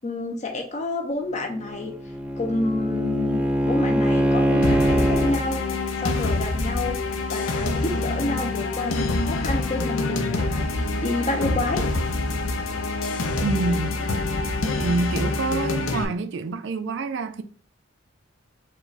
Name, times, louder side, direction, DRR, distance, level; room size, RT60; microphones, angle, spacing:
voice 1, 0.0-1.9 2.4-7.0 7.3-11.8, left 2 dB, 35° left, 0.7 m, -29 dB
Bowed string instrument, 1.4-5.4, equal, 5° right, 0.4 m, -23 dB
sound 1, 4.6-16.0, left 2 dB, 80° left, 0.6 m, -26 dB
voice 2, 13.4-14.0 14.8-17.4, right 3 dB, 60° right, 0.4 m, -27 dB
4.6 x 2.3 x 4.0 m
head